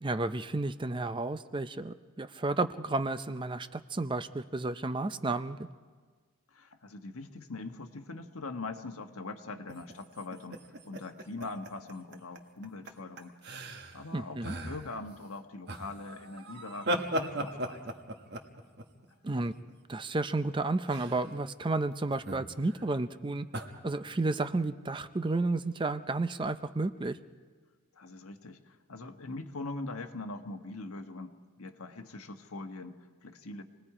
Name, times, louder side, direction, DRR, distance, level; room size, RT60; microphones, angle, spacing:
voice 1, 0.0-5.7 14.1-14.6 19.2-19.5 19.9-23.5 23.8-27.2, right 2 dB, 20° right, 12 dB, 0.5 m, -32 dB
voice 2, 6.5-13.4 13.7-18.0 27.9-33.6, left 3 dB, 85° left, 5 dB, 1.4 m, -42 dB
sound 1, 9.7-12.4 12.6-12.9 13.2-14.1 14.4-15.0 15.7-19.9 20.9-21.3 22.1-22.9 23.5-23.7, right 1 dB, 50° right, 1.3 m, -37 dB
27.5 x 19.5 x 4.9 m, 1.5 s
head